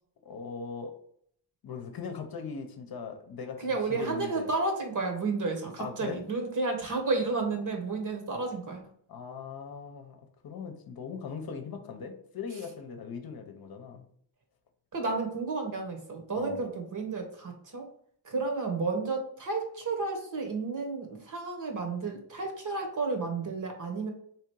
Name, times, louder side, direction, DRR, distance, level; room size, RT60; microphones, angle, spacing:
voice 1, 0.2-0.9 1.6-4.5 5.8-6.2 9.1-14.1 16.3-16.6, left 5 dB, 50° left, 5 dB, 0.9 m, -40 dB
voice 2, 3.6-8.8 14.9-17.8 18.2-24.1, right 3 dB, 40° right, 4 dB, 1.3 m, -32 dB
3.6 x 3.2 x 4.7 m, 0.65 s
cardioid pair, 100°, 45 cm